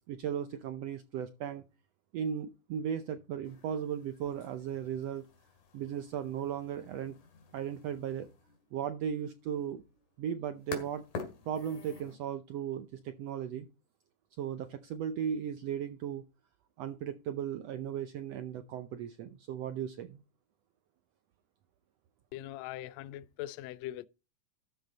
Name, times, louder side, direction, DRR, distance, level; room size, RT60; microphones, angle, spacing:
voice 1, 0.1-1.6 2.1-5.3 5.7-7.2 7.5-8.3 8.7-9.8 10.2-11.0 11.5-13.7 14.4-16.2 16.8-20.2, right 9 dB, 85° right, 1.4 m, -36 dB
sound 1, 3.4-12.2, left 5 dB, 70° left, 3.4 m, -49 dB
voice 2, 22.3-24.1, left 14 dB, 85° left, 1.5 m, -41 dB
13.0 x 6.6 x 4.0 m
omnidirectional pair, 3.8 m